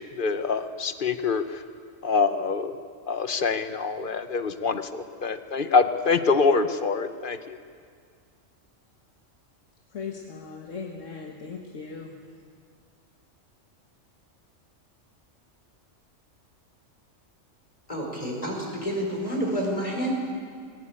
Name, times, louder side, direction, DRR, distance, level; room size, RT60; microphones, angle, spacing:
voice 1, 0.2-1.4 2.0-2.8 3.1-7.6, left 4 dB, 45° left, 9 dB, 1.1 m, -25 dB
voice 2, 9.9-12.1, left 5 dB, 75° left, 1 dB, 1.8 m, -38 dB
voice 3, 17.9-20.1, equal, 30° left, -1 dB, 5.0 m, -29 dB
19.5 x 18.0 x 8.8 m, 2.1 s
omnidirectional pair, 1.3 m